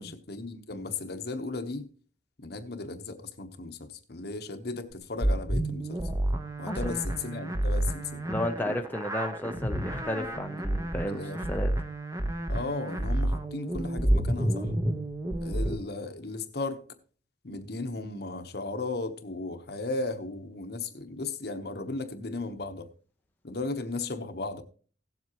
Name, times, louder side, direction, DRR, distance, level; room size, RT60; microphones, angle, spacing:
voice 1, 0.0-1.9 2.4-6.0 6.6-8.2 10.5-10.6 11.0-11.4 12.5-14.7 15.3-16.9 17.4-22.9 23.4-24.6, left 3 dB, 55° left, 1.0 m, -36 dB
sound 1, 5.2-15.8, right 1 dB, 15° right, 1.0 m, -30 dB
voice 2, 8.3-11.7, left 1 dB, 10° left, 0.7 m, -33 dB
17.5 x 7.6 x 3.0 m
head